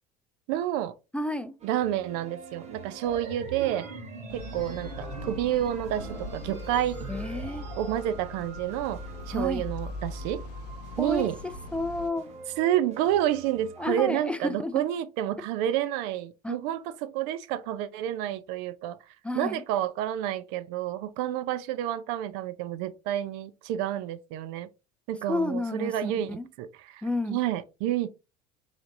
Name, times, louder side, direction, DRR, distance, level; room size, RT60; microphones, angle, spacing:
voice 1, 0.5-0.9 1.6-3.9 4.3-7.0 7.8-10.4 11.0-11.4 12.6-19.0 19.4-24.7 25.1-28.1, right 12 dB, 60° right, 0.4 m, -29 dB
voice 2, 1.1-1.5 7.1-7.7 9.3-9.6 11.0-11.3 11.7-12.3 13.8-14.8 16.4-16.6 19.2-19.6 25.3-26.5 27.0-27.4, left 2 dB, 5° left, 0.4 m, -31 dB
sound 1, 1.6-14.1, right 4 dB, 35° right, 1.3 m, -47 dB
sound 2, 3.0-8.0, right 4 dB, 85° right, 1.2 m, -42 dB
sound 3, 4.3-12.1, left 3 dB, 85° left, 0.5 m, -40 dB
3.8 x 3.3 x 2.6 m
hypercardioid pair, 75°, 20 cm